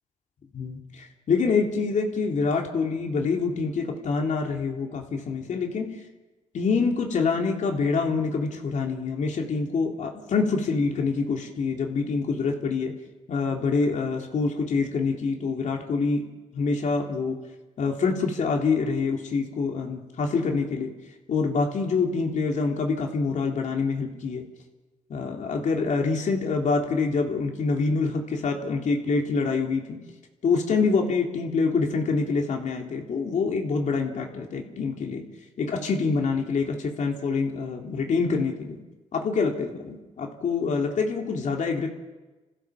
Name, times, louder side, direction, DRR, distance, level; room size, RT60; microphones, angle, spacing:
voice 1, 0.5-6.0 6.5-13.0 13.3-17.4 17.8-20.9 21.3-24.5 25.1-30.0 30.4-35.3 35.6-38.8 39.1-41.9, left 4 dB, 60° left, 1 dB, 3.4 m, -26 dB
27.0 x 15.0 x 7.2 m, 1.2 s
cardioid pair, 75°, 14 cm